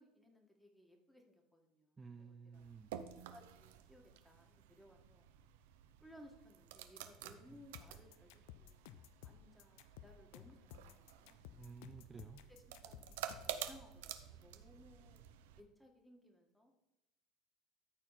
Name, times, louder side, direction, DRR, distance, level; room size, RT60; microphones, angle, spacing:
voice 1, 0.0-2.6 3.3-5.3 6.0-11.4 12.5-16.7, left 1 dB, 5° left, 3 dB, 2.0 m, -62 dB
voice 2, 2.0-2.9 7.5-7.6 11.6-12.4, right 5 dB, 25° right, 5 dB, 0.6 m, -53 dB
sound 1, 2.5-15.6, right 10 dB, 85° right, 0.6 m, -51 dB
sound 2, 7.7-13.6, left 12 dB, 80° left, 0.5 m, -56 dB
13.0 x 4.4 x 4.2 m, 0.98 s
supercardioid pair, 90°, 0 cm